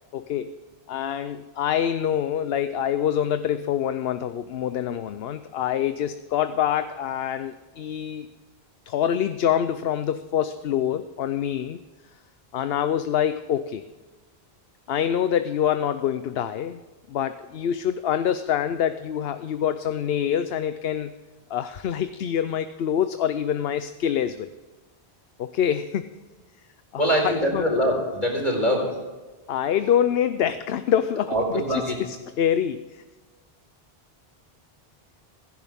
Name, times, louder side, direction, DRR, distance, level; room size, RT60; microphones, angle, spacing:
voice 1, 0.1-0.6 0.9-8.3 8.9-11.8 12.5-13.8 14.9-16.8 17.1-21.1 21.5-24.5 25.4-26.1 26.9-27.7 29.5-33.0, left 9 dB, 75° left, 11 dB, 0.8 m, -25 dB
voice 2, 27.0-28.9 31.3-31.9, equal, 50° left, -1 dB, 4.5 m, -23 dB
16.5 x 15.0 x 3.6 m, 1.3 s
omnidirectional pair, 1.0 m